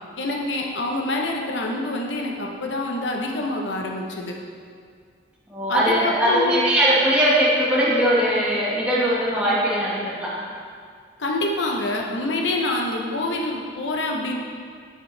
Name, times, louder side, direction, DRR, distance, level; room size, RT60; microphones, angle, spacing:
voice 1, 0.2-4.4 5.7-6.6 11.2-14.4, left 2 dB, 80° left, 0 dB, 0.9 m, -26 dB
voice 2, 5.5-10.4, equal, 5° right, -8 dB, 1.6 m, -20 dB
8.2 x 6.7 x 3.3 m, 2.1 s
head